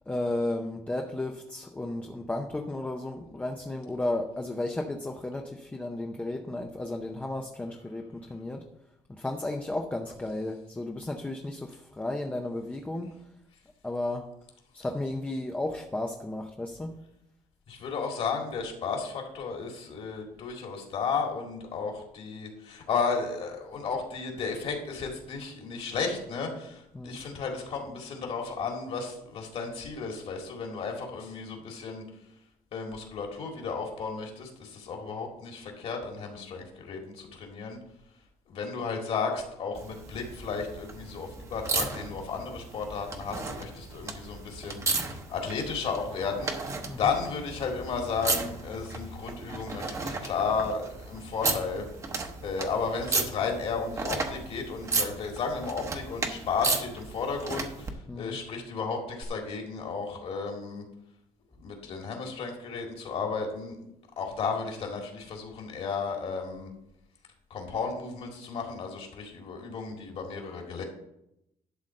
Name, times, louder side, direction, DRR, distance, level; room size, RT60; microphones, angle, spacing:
voice 1, 0.1-8.7 9.1-13.2 13.8-14.3 14.7-16.9 26.9-27.2 46.8-47.2 58.1-58.4, left 2 dB, 10° left, 2 dB, 0.6 m, -33 dB
voice 2, 17.7-32.0 32.7-37.8 38.5-51.8 52.4-60.8 61.6-63.9 64.2-66.7 67.5-70.8, left 5 dB, 50° left, 2 dB, 2.1 m, -33 dB
sound 1, 39.7-57.9 59.2-59.3, right 3 dB, 25° right, 0.9 m, -34 dB
11.5 x 4.0 x 7.5 m, 0.82 s
cardioid pair, 175°, 13 cm